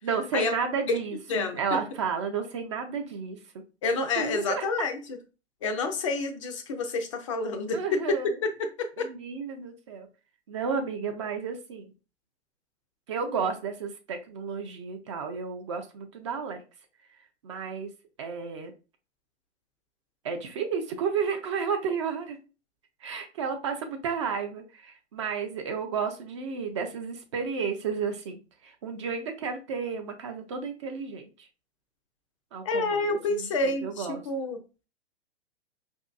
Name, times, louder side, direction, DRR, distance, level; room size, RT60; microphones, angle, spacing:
voice 1, 0.0-3.6 4.2-4.7 7.7-8.4 9.0-10.1 10.5-11.9 13.1-16.6 17.4-17.9 18.2-18.7 20.2-22.4 23.0-31.5 32.5-34.2, right 6 dB, 30° right, 0.4 m, -32 dB
voice 2, 1.3-1.8 3.8-5.0 5.6-8.2 8.6-9.1 32.6-34.6, left 3 dB, 30° left, 0.4 m, -28 dB
4.8 x 2.6 x 2.3 m
figure-of-eight pair, 110°, 33 cm